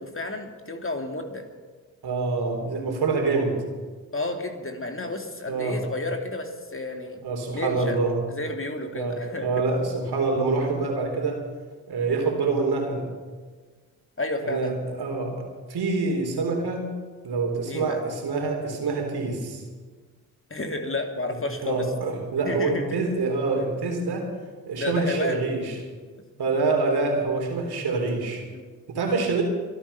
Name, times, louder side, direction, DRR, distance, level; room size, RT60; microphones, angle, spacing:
voice 1, 0.0-1.4 4.1-7.2 7.5-8.0 8.3-9.5 14.2-14.8 17.7-18.0 20.5-21.9 22.4-23.0 24.8-25.4 28.5-28.7, left 2 dB, 30° left, 4 dB, 2.6 m, -31 dB
voice 2, 2.0-3.5 5.5-5.8 7.2-8.2 8.9-11.4 11.9-13.0 14.4-15.4 15.7-16.9 17.2-19.6 21.6-24.3 24.7-25.8 26.4-28.4 28.9-29.4, right 3 dB, 65° right, 2 dB, 3.7 m, -26 dB
24.0 x 9.0 x 5.7 m, 1.5 s
hypercardioid pair, 45°, 42 cm